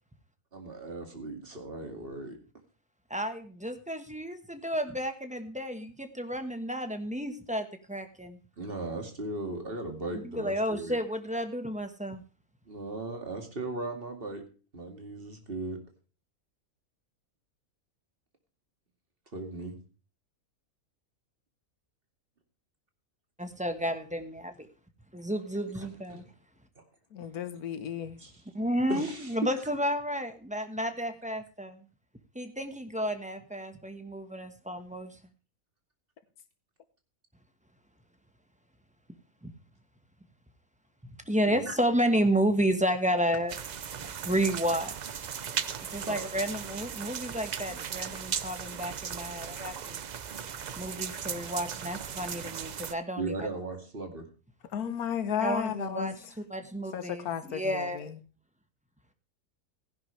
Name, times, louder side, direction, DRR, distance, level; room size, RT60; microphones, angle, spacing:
voice 1, 0.5-2.4 8.6-11.0 12.7-14.4 14.7-15.8 19.3-19.8 25.7-26.2 26.8-26.9 28.2-28.3 28.9-29.6 41.5-41.7 46.0-46.3 51.1-51.2 53.2-54.2, right 2 dB, 40° right, 4 dB, 2.5 m, -37 dB
voice 2, 3.1-8.4 10.1-12.2 23.4-24.5 25.1-26.2 28.5-31.8 32.3-35.2 39.4-39.5 41.0-43.6 44.2-45.2 45.9-50.0 50.8-53.5 55.4-56.1 56.5-58.0, equal, 5° right, 7 dB, 1.1 m, -31 dB
voice 3, 27.1-28.2 54.7-56.3 56.9-58.2, left 8 dB, 80° left, 10 dB, 1.5 m, -34 dB
sound 1, 43.5-52.9, right 7 dB, 85° right, 0.3 m, -37 dB
15.5 x 10.5 x 3.3 m, 0.37 s
omnidirectional pair, 1.6 m